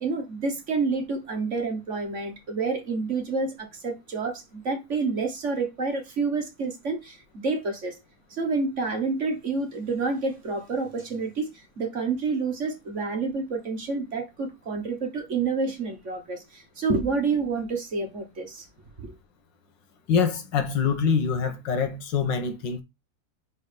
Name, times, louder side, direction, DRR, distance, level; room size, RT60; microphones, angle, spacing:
voice 1, 0.0-8.0 8.3-11.5 11.8-18.7 19.0-19.1, right 4 dB, 45° right, 1.7 m, -28 dB
voice 2, 20.1-22.8, left 6 dB, 85° left, 1.9 m, -25 dB
5.5 x 4.7 x 5.1 m
omnidirectional pair, 1.9 m